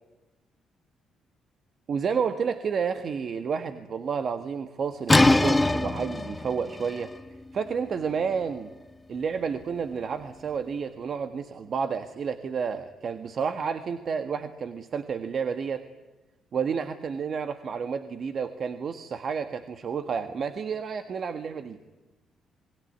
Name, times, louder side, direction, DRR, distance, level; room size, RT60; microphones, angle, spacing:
voice 1, 1.9-7.1 7.5-8.7 9.1-15.8 16.5-21.8, right 6 dB, 55° right, 9 dB, 1.6 m, -30 dB
sound 1, 5.1-10.7, left 2 dB, 15° left, 1.2 m, -26 dB
28.0 x 21.5 x 9.7 m, 1.2 s
cardioid pair, 90°, 0 cm